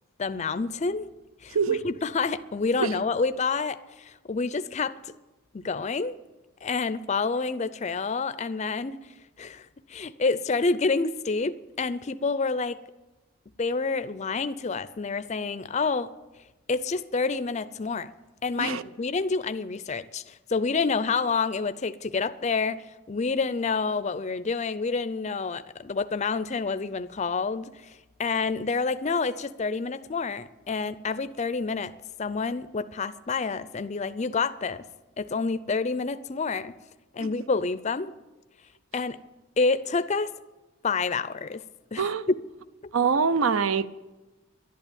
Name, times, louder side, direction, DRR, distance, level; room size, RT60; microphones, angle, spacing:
voice 1, 0.2-1.1 1.4-5.1 5.5-6.1 6.6-9.0 9.4-12.8 13.6-16.1 16.7-18.1 18.4-31.9 32.2-34.8 35.2-36.7 37.1-38.1 38.9-39.2 39.6-40.3 40.8-41.6 41.9-42.1, left 4 dB, 30° left, 0.5 m, -28 dB
voice 2, 1.5-1.9 2.8-2.9 18.6-18.8 37.2-37.3 42.0-42.3 42.9-43.9, right 5 dB, 75° right, 0.6 m, -24 dB
11.5 x 11.0 x 8.7 m
head